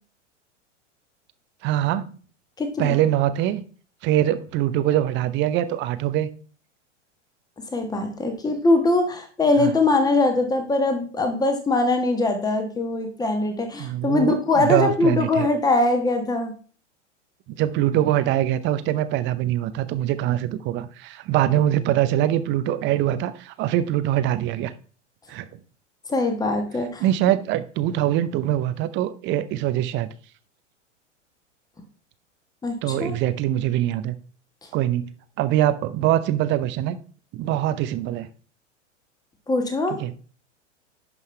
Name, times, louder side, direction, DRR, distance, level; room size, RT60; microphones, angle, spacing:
voice 1, 1.6-2.0 2.8-3.6 4.0-6.3 9.6-9.7 13.8-15.5 17.5-24.7 25.3-25.5 27.0-30.1 32.8-34.1 34.7-35.1 35.4-37.0 37.3-38.3 39.9-40.1, right 12 dB, 30° right, 0.6 m, -23 dB
voice 2, 2.6-3.0 7.7-16.5 26.1-27.0 32.6-33.1 39.5-40.0, left 2 dB, 10° left, 1.4 m, -22 dB
11.0 x 5.5 x 3.2 m
hypercardioid pair, 100°, 37 cm